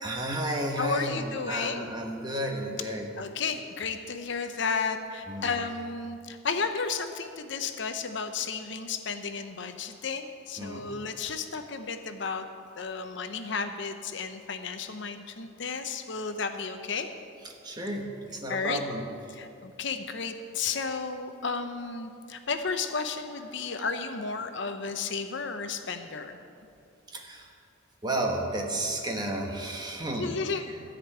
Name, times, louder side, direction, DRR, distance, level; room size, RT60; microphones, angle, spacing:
voice 1, 0.0-3.1 5.3-5.5 10.6-10.9 17.4-19.0 23.7-23.8 27.1-27.5 28.0-30.3, right 1 dB, 20° right, 1 dB, 1.1 m, -32 dB
voice 2, 0.8-1.8 3.2-12.4 12.8-17.1 18.5-18.8 19.3-26.4 30.2-30.6, left 5 dB, 60° left, 8 dB, 0.7 m, -33 dB
13.5 x 5.2 x 8.7 m, 2.5 s
head